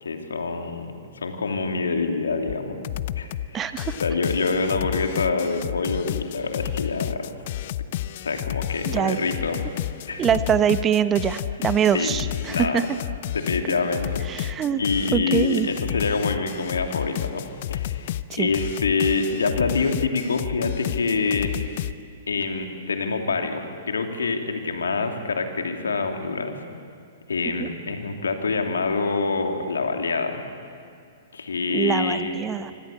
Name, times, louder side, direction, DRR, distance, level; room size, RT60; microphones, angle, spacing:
voice 1, 0.0-2.8 3.2-3.7 4.0-7.3 8.2-9.6 10.0-10.2 11.9-12.2 12.5-12.8 13.3-21.5 22.3-26.6 27.3-30.4 31.3-32.4, left 4 dB, 75° left, 4 dB, 2.9 m, -26 dB
sound 1, 2.5-2.6 2.8-3.5 3.8-21.9, left 13 dB, 50° left, 0.7 m, -31 dB
voice 2, 3.5-4.0 8.9-9.2 10.2-12.9 14.3-14.8 15.1-15.7 18.3-18.5 27.6-27.7 31.7-32.7, right 8 dB, 20° right, 12 dB, 1.0 m, -23 dB
25.5 x 25.5 x 8.5 m, 2.3 s
figure-of-eight pair, 110°, 0 cm